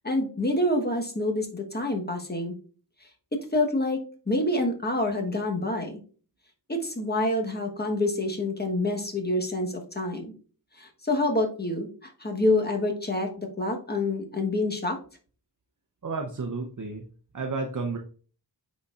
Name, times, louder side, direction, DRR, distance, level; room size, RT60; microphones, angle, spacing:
voice 1, 0.0-2.6 3.5-6.0 6.7-10.3 10.8-15.0, left 1 dB, 25° left, 2 dB, 1.2 m, -27 dB
voice 2, 16.0-17.0 17.3-18.0, right 4 dB, 45° right, 3 dB, 0.7 m, -31 dB
9.4 x 4.1 x 2.4 m, 0.40 s
wide cardioid pair, 80°, 43 cm